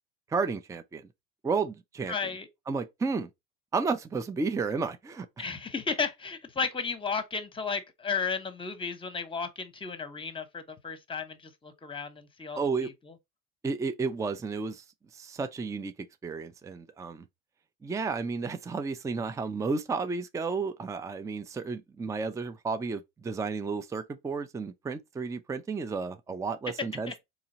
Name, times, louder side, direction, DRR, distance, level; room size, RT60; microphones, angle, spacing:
voice 1, 0.3-1.1 1.4-2.3 2.7-3.3 3.7-5.4 12.6-12.9 13.6-14.8 15.1-15.9 16.2-17.3 17.8-27.2, right 4 dB, 10° right, 0.4 m, -32 dB
voice 2, 2.1-2.5 5.4-13.1 27.1-27.2, left 5 dB, 15° left, 0.9 m, -34 dB
3.8 x 2.9 x 2.8 m
supercardioid pair, 90°, 31 cm